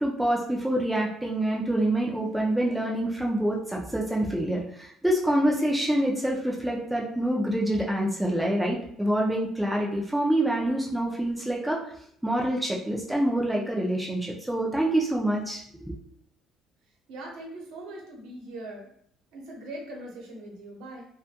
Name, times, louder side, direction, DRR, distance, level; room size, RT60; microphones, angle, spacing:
voice 1, 0.0-11.8 12.2-15.9, right 1 dB, 5° right, -3 dB, 0.3 m, -26 dB
voice 2, 17.1-18.9 19.3-21.1, right 1 dB, 75° right, -1 dB, 0.8 m, -41 dB
2.6 x 2.2 x 2.7 m, 0.66 s
cardioid pair, 175°, 0 cm